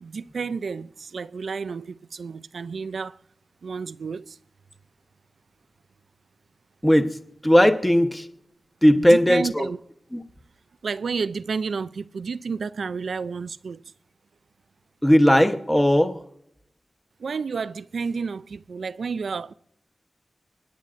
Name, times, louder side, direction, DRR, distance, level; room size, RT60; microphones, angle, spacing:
voice 1, 0.0-3.2 3.6-4.4 9.0-9.8 10.8-13.8 17.2-19.5, right 5 dB, 90° right, 0.4 m, -31 dB
voice 2, 7.4-8.3 8.8-9.7 10.1-10.2 15.0-16.2, equal, 10° left, 0.9 m, -17 dB
26.5 x 9.6 x 2.5 m
wide cardioid pair, 95°, 0 cm